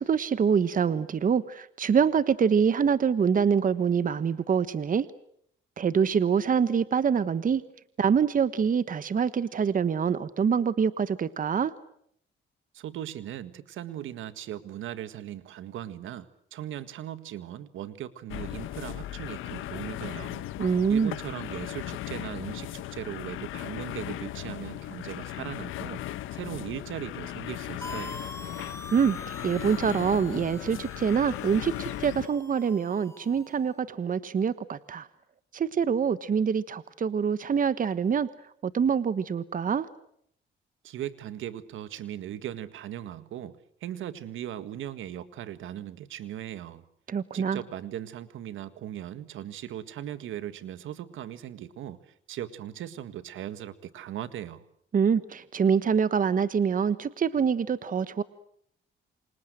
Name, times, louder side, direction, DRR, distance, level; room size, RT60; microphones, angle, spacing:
voice 1, 0.0-5.0 5.8-7.6 8.0-11.7 20.6-21.1 28.9-29.2 29.4-35.1 35.5-38.3 38.6-39.9 47.1-47.6 54.9-58.2, right 6 dB, 45° right, 14 dB, 1.3 m, -25 dB
voice 2, 12.7-20.4 20.9-26.0 26.3-28.2 40.8-46.8 47.3-52.0 52.3-54.7, right 11 dB, 80° right, 13 dB, 1.8 m, -38 dB
sound 1, 18.3-32.3, left 14 dB, 85° left, 1.4 m, -37 dB
sound 2, 27.8-33.6, left 2 dB, 15° left, 2.1 m, -44 dB
28.5 x 26.0 x 7.8 m, 0.71 s
cardioid pair, 90°, 20 cm